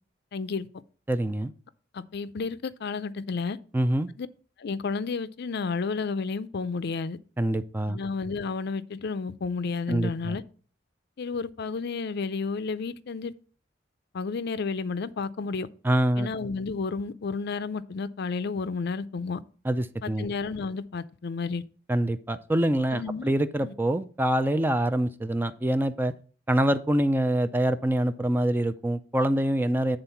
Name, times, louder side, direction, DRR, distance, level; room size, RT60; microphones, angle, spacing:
voice 1, 0.3-0.7 1.9-3.6 4.2-4.3 4.6-7.2 7.9-10.4 11.2-13.3 14.1-15.7 16.2-19.4 20.0-21.6 22.9-23.3 23.6-23.7, left 4 dB, 60° left, 0.5 m, -31 dB
voice 2, 1.1-1.5 3.7-4.1 7.4-8.0 9.9-10.4 15.8-16.3 19.6-20.3 21.9-26.1 26.5-30.0, right 1 dB, 10° right, 0.4 m, -25 dB
8.9 x 3.8 x 5.7 m
head